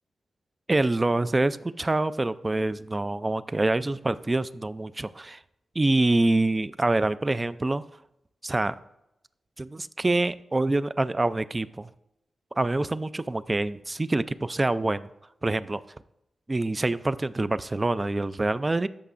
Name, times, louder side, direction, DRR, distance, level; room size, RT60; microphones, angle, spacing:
voice 1, 0.7-5.4 5.8-7.8 8.4-8.8 9.6-11.9 12.6-15.1 15.4-15.8 16.5-18.9, right 2 dB, 25° right, 15 dB, 0.3 m, -26 dB
13.5 x 5.8 x 2.5 m, 0.85 s
wide cardioid pair, 90°, 0 cm